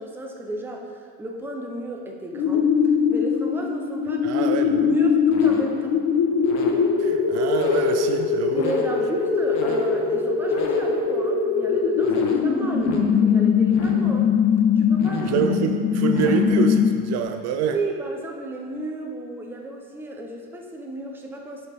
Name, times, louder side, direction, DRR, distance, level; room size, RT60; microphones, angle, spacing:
voice 1, 0.0-2.7 3.1-4.5 4.8-6.0 8.5-14.3 14.8-15.4 17.7-21.7, right 1 dB, 5° right, 1 dB, 0.6 m, -33 dB
sound 1, 2.3-17.2, left 6 dB, 55° left, 1.0 m, -21 dB
voice 2, 4.2-5.0 7.0-8.7 15.2-17.8, right 7 dB, 55° right, 7 dB, 0.5 m, -26 dB
11.0 x 4.3 x 3.5 m, 2.1 s
cardioid pair, 150°, 31 cm